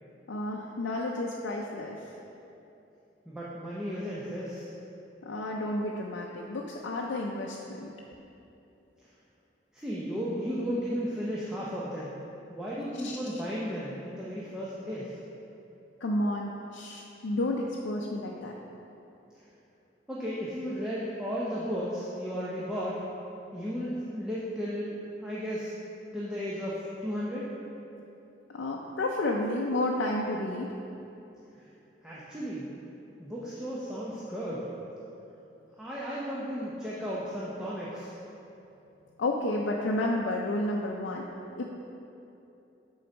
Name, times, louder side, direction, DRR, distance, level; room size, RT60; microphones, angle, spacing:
voice 1, 0.3-2.2 5.2-7.9 13.0-13.2 16.0-18.5 28.5-30.8 39.2-41.3 41.6-41.7, left 1 dB, 85° left, -2 dB, 0.5 m, -31 dB
voice 2, 3.3-4.7 9.7-12.1 12.5-15.2 20.1-23.0 23.5-25.7 26.1-27.5 31.6-31.7 32.0-32.7 33.2-34.7 35.8-38.1, equal, 5° right, -8 dB, 0.6 m, -34 dB
7.6 x 3.9 x 5.2 m, 2.9 s
head